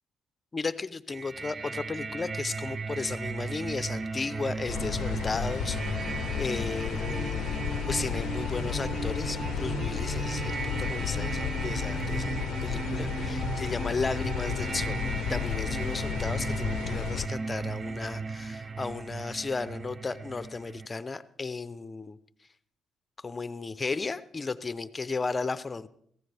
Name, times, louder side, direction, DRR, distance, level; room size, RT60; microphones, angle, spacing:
voice 1, 0.5-6.1 6.4-7.6 7.9-22.2 23.2-25.9, left 4 dB, 25° left, 15 dB, 0.7 m, -34 dB
sound 1, 1.1-20.9, right 4 dB, 35° right, 0.5 m, -35 dB
sound 2, 4.7-17.3, left 11 dB, 80° left, 0.5 m, -33 dB
17.5 x 15.0 x 3.4 m, 0.67 s
cardioid pair, 90°, 0 cm